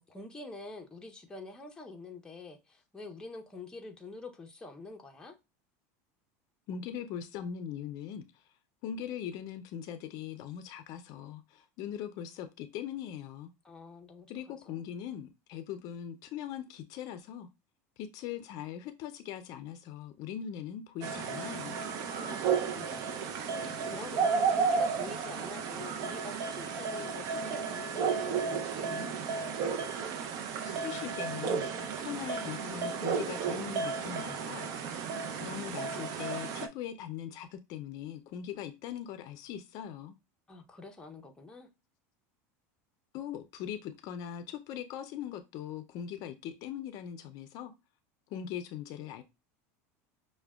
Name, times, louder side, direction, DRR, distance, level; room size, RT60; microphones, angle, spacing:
voice 1, 0.0-5.4 13.6-14.8 22.1-29.5 40.5-41.7, left 3 dB, 10° left, 0.6 m, -47 dB
voice 2, 6.7-8.4 8.8-13.5 14.3-17.5 18.0-21.8 30.6-35.0 35.3-40.1 43.1-47.7 48.3-49.2, left 9 dB, 55° left, 0.4 m, -41 dB
sound 1, 21.0-36.7, right 6 dB, 50° right, 0.5 m, -33 dB
5.8 x 2.1 x 2.3 m
supercardioid pair, 125°, 8 cm